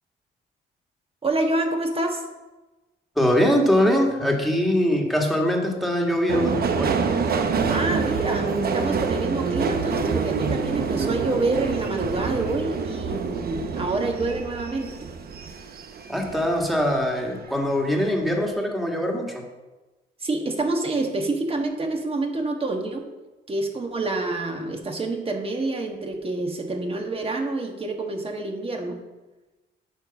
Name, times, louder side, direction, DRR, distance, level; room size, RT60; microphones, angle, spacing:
voice 1, 1.2-2.2 7.7-15.1 20.2-23.0 23.5-29.0, right 2 dB, 30° right, 2 dB, 1.6 m, -27 dB
voice 2, 3.2-6.9 16.1-19.4, equal, ahead, 0 dB, 2.0 m, -22 dB
Subway metro underground, 6.3-17.0 17.4-18.1 18.4-18.5, right 5 dB, 50° right, 0.9 m, -27 dB
9.5 x 4.6 x 7.0 m, 1.1 s
cardioid pair, 90°, 20 cm